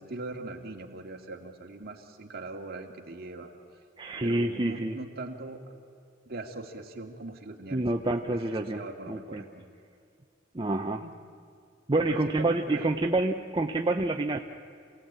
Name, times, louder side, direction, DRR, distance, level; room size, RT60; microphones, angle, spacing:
voice 1, 0.0-3.5 4.2-5.6 6.3-8.4 8.7-9.7 11.0-11.1 12.1-12.9, right 2 dB, 55° right, 2 dB, 2.3 m, -41 dB
voice 2, 4.0-5.0 7.7-8.8 9.1-9.5 10.5-11.0 11.9-14.4, right 2 dB, 25° right, 3 dB, 0.7 m, -28 dB
27.5 x 17.0 x 8.9 m, 2.4 s
head